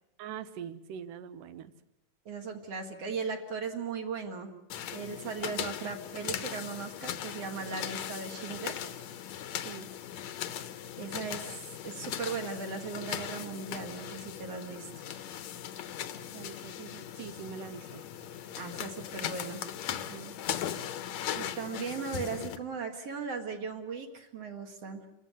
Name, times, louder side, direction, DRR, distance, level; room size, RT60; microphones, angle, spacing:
voice 1, 0.2-1.7 5.5-6.0 9.6-9.9 16.3-18.0 20.1-20.4, right 8 dB, 75° right, 13 dB, 2.6 m, -44 dB
voice 2, 2.3-4.5 4.9-8.7 11.0-15.1 18.6-19.7 21.3-25.1, right 5 dB, 50° right, 4 dB, 2.8 m, -38 dB
sound 1, 4.7-22.6, left 10 dB, 65° left, 2.0 m, -39 dB
28.5 x 15.5 x 8.5 m, 0.87 s
omnidirectional pair, 3.9 m